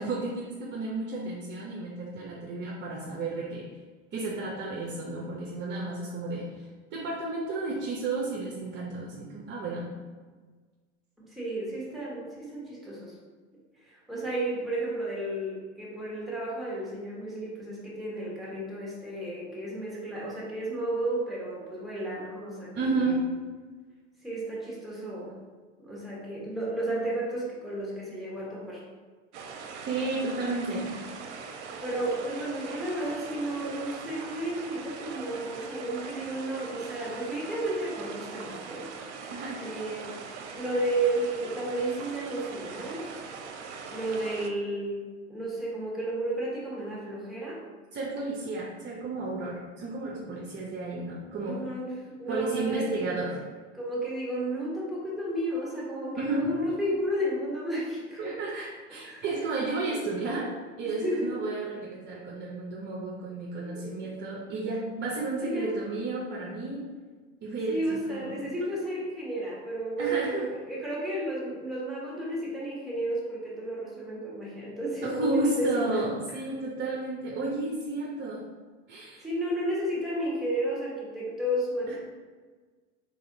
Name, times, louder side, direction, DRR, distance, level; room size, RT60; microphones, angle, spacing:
voice 1, 0.0-3.7 4.1-6.5 6.9-9.9 22.7-23.2 29.9-30.9 39.3-39.7 47.9-51.6 52.3-53.4 56.2-56.6 58.2-60.5 60.8-66.8 67.4-68.7 70.0-70.5 75.0-78.5 78.9-79.2 81.9-82.0, right 3 dB, 30° right, -3 dB, 0.7 m, -32 dB
voice 2, 11.2-13.1 13.8-23.1 24.2-25.4 25.8-28.8 31.8-38.9 39.6-40.2 40.5-43.0 43.9-47.6 51.4-53.2 53.7-58.3 59.0-59.2 59.9-60.0 61.0-61.3 63.6-64.1 65.4-65.8 67.7-76.1 79.2-82.0, right 1 dB, ahead, -6 dB, 1.5 m, -32 dB
sound 1, 29.3-44.5, right 5 dB, 70° right, 0.6 m, -41 dB
4.1 x 3.6 x 2.7 m, 1.4 s
hypercardioid pair, 85°, 36 cm